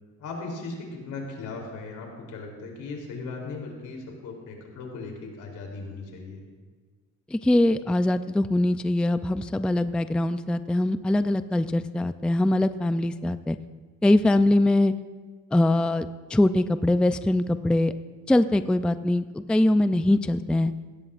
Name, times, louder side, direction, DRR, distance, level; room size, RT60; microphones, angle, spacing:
voice 1, 0.2-6.4, left 3 dB, 80° left, 0 dB, 3.4 m, -37 dB
voice 2, 7.3-13.6 14.0-14.9 15.5-16.1 16.3-17.9 18.3-20.7, left 1 dB, 5° left, 11 dB, 0.3 m, -22 dB
17.0 x 16.0 x 2.5 m, 1.5 s
cardioid pair, 90°, 30 cm